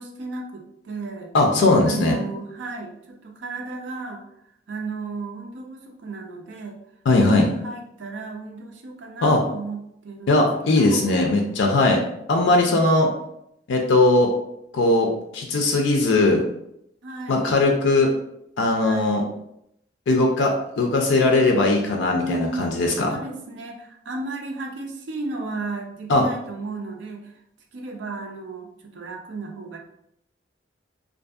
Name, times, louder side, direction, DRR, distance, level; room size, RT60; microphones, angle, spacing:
voice 1, 0.0-1.3 1.8-4.2 4.7-6.8 7.2-11.1 12.5-12.9 17.0-17.6 18.8-19.3 22.1-22.7 23.0-27.3 27.7-29.8, right 3 dB, 75° right, 2 dB, 0.5 m, -34 dB
voice 2, 1.3-2.2 7.1-7.5 9.2-9.4 10.3-12.0 12.3-13.1 13.7-14.3 14.7-16.4 17.3-18.1 18.6-19.2 20.1-23.2 26.1-26.2, left 2 dB, 80° left, 2 dB, 0.4 m, -19 dB
2.6 x 2.5 x 2.3 m, 0.76 s
head